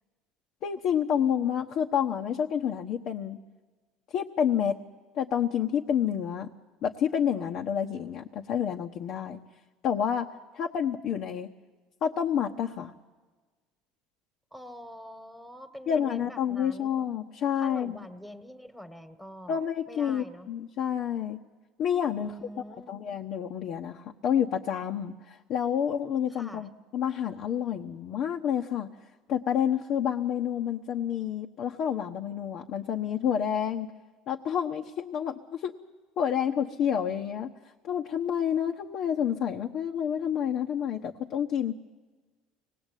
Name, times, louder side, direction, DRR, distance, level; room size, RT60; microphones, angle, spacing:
voice 1, 0.6-3.4 4.1-4.8 5.1-6.5 6.8-9.4 9.8-11.5 12.0-12.9 15.9-18.0 19.5-21.4 21.8-22.5 22.9-28.9 29.3-33.9 34.3-35.7 36.2-37.5 37.8-41.7, left 8 dB, 55° left, 2 dB, 1.2 m, -29 dB
voice 2, 14.5-16.9 17.5-19.6 19.9-20.5 22.2-22.9 26.3-26.7, equal, 5° left, 9 dB, 1.7 m, -45 dB
24.5 x 19.0 x 9.2 m, 1.3 s
supercardioid pair, 100°, 0 cm